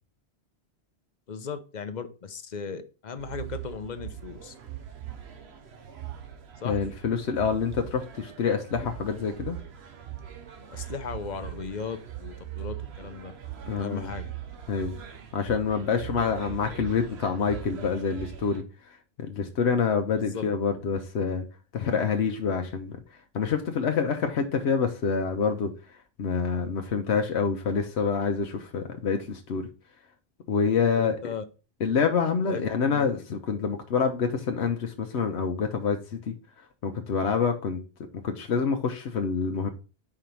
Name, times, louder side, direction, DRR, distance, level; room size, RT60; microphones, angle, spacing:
voice 1, 1.3-4.5 6.6-6.8 10.7-13.3 13.8-14.3 20.1-20.4 30.9-31.4 32.5-33.0, left 5 dB, 45° left, 0.8 m, -37 dB
sound 1, 3.2-18.6, right 11 dB, 80° right, 1.1 m, -41 dB
voice 2, 6.6-9.6 13.7-14.1 14.7-14.9 15.3-21.4 21.7-23.0 23.3-25.7 26.2-29.7 30.5-31.2 31.8-36.4 36.8-37.8 38.2-39.7, left 6 dB, 85° left, 1.1 m, -27 dB
4.9 x 4.5 x 5.3 m
omnidirectional pair, 1.1 m